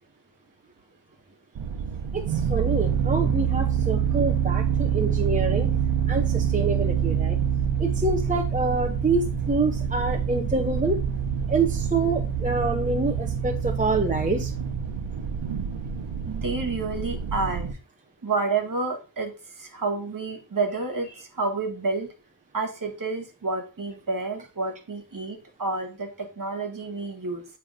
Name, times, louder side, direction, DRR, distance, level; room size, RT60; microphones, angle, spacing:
sound 1, 1.5-17.7, right 8 dB, 85° right, 1.0 m, -26 dB
voice 1, 2.1-5.7 6.1-7.4 7.8-11.0 11.5-14.5, right 3 dB, 15° right, 2 dB, 0.8 m, -26 dB
voice 2, 16.3-17.7 18.2-22.1 22.5-27.5, right 3 dB, 45° right, 5 dB, 1.8 m, -29 dB
8.9 x 3.5 x 5.0 m, 0.33 s
wide cardioid pair, 115°, 45 cm